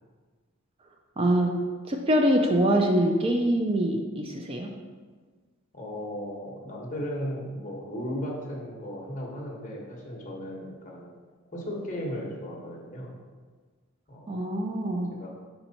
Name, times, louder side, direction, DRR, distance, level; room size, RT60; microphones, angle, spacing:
voice 1, 1.2-1.5 1.8-4.7 14.3-15.1, right 1 dB, 25° right, 2 dB, 0.4 m, -24 dB
voice 2, 5.7-11.1 11.5-13.2 14.1-14.3 15.1-15.3, equal, 35° left, -2 dB, 1.1 m, -36 dB
5.4 x 4.3 x 4.0 m, 1.5 s
head